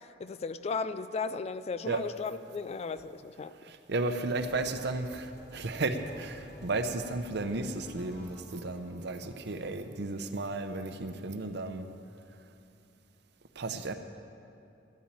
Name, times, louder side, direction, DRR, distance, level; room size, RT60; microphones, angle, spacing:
voice 1, 0.2-3.5, left 4 dB, 35° left, 13 dB, 0.4 m, -35 dB
voice 2, 3.6-11.9 13.6-13.9, right 2 dB, 65° right, 8 dB, 0.8 m, -34 dB
sound 1, 4.3-10.3, equal, 60° left, 3.4 m, -53 dB
13.5 x 7.1 x 8.8 m, 2.8 s
head